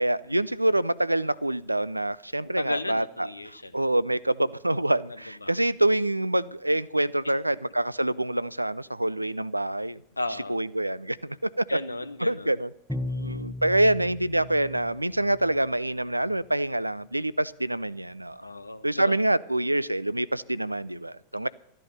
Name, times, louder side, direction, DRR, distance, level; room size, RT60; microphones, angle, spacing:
voice 1, 0.0-3.3 3.7-10.0 10.5-11.6 12.2-12.7 13.2-18.4 18.8-21.5, right 1 dB, 85° right, 0.4 m, -26 dB
voice 2, 2.6-3.8 5.1-5.6 10.2-10.6 11.7-12.6 12.9-13.5 18.4-19.2, left 2 dB, 85° left, 0.9 m, -35 dB
Bowed string instrument, 12.9-15.7, left 1 dB, ahead, 0.7 m, -36 dB
13.5 x 10.5 x 6.8 m
figure-of-eight pair, 90°, 0 cm